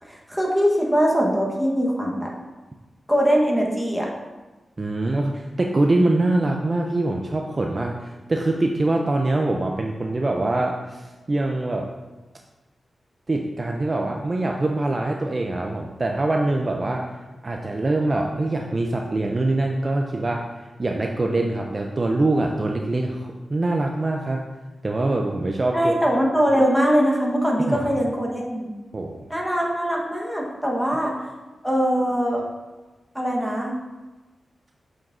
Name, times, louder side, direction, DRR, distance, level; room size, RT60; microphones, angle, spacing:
voice 1, 0.0-2.3 3.1-4.1 25.7-28.7 29.3-31.3 31.6-32.4 33.1-33.7, equal, ahead, -2 dB, 1.1 m, -22 dB
voice 2, 4.8-11.9 13.3-17.1 17.4-24.4 24.8-26.0 27.7-27.8 28.9-29.3, right 2 dB, 35° right, 1 dB, 0.4 m, -24 dB
6.7 x 5.9 x 2.6 m, 1.2 s
wide cardioid pair, 105°, 0 cm